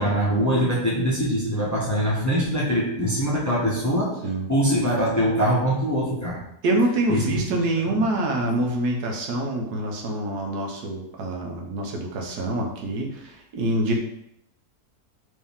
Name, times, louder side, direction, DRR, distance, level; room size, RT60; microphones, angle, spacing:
voice 1, 0.0-4.2 4.5-6.4 7.1-7.2 8.0-8.1, equal, 15° left, -6 dB, 0.8 m, -23 dB
voice 2, 6.6-14.0, right 1 dB, 85° right, 1 dB, 1.4 m, -25 dB
4.7 x 2.7 x 3.5 m, 0.74 s
omnidirectional pair, 1.7 m